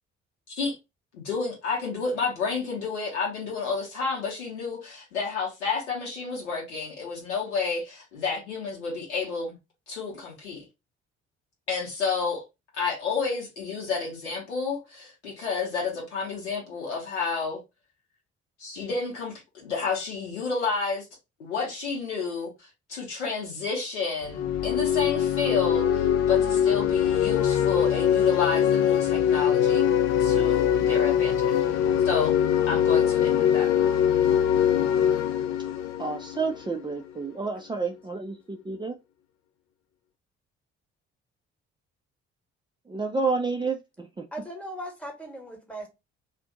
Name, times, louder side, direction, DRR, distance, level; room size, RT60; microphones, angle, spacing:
voice 1, 1.1-9.6 9.9-10.6 11.7-12.4 12.7-17.6 18.6-21.0 21.4-29.8 30.2-32.4 32.7-33.7, left 5 dB, 80° left, 1.1 m, -30 dB
sound 1, 24.2-36.9, left 9 dB, 50° left, 0.4 m, -23 dB
voice 2, 36.0-39.0 42.9-44.3, right 4 dB, 15° right, 0.4 m, -30 dB
voice 3, 44.3-45.9, right 1 dB, 5° left, 1.1 m, -38 dB
2.5 x 2.5 x 3.7 m
figure-of-eight pair, 45°, 35 cm